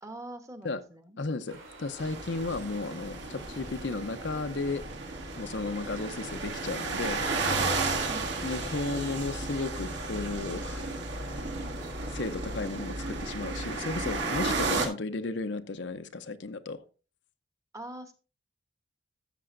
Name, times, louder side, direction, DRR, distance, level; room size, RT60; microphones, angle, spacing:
voice 1, 0.0-1.2 8.1-8.6 17.7-18.1, right 1 dB, 15° right, 1.1 m, -43 dB
voice 2, 1.2-4.8 5.4-7.3 8.4-10.9 12.1-16.8, left 3 dB, 60° left, 0.7 m, -34 dB
sound 1, 1.5-12.6, right 2 dB, 80° right, 4.4 m, -51 dB
sound 2, 2.0-14.9, right 3 dB, 60° right, 2.1 m, -33 dB
13.5 x 7.6 x 2.6 m
head